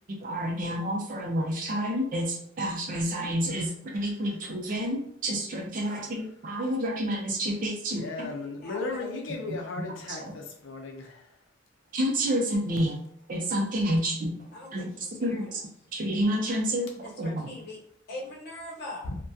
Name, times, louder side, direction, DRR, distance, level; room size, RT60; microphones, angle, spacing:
voice 1, 0.1-8.3 10.1-10.3 11.9-13.0 13.3-14.3 14.7-14.9 15.2-15.6 15.9-17.4, equal, 45° right, 0.5 m, -29 dB
voice 2, 8.0-11.3 19.1-19.2, left 3 dB, 75° left, 0.5 m, -36 dB
voice 3, 8.6-9.1 14.5-15.6 17.0-17.8 18.1-19.1, left 1 dB, 55° left, 0.8 m, -42 dB
2.7 x 2.2 x 2.3 m
head